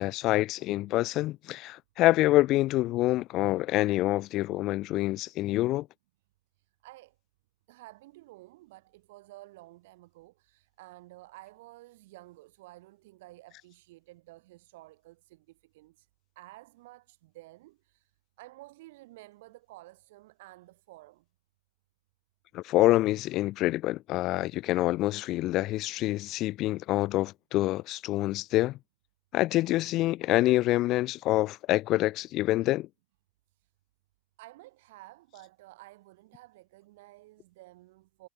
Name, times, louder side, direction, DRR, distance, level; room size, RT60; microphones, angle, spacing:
voice 1, 0.0-5.9 22.5-28.8 29.3-32.9, left 17 dB, 45° left, 0.5 m, -26 dB
voice 2, 6.6-7.2 7.7-16.1 16.4-18.1 18.4-21.2 33.6-33.7 34.4-38.3, right 19 dB, 65° right, 5.3 m, -52 dB
hypercardioid pair, 120°, 0 cm